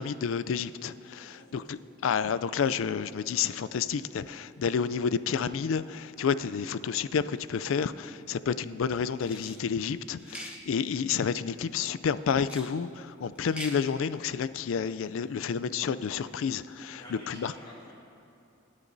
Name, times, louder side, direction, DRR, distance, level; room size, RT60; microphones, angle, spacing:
voice 1, 0.0-17.5, left 6 dB, 70° left, 15 dB, 0.4 m, -30 dB
voice 2, 1.1-1.9 16.1-16.5 17.0-17.9, equal, 20° left, -6 dB, 1.9 m, -51 dB
sound 1, 9.2-9.6 10.2-10.6 12.4-12.7 13.4-13.8, right 1 dB, 5° right, 1.0 m, -43 dB
28.0 x 9.7 x 2.6 m, 2.7 s
head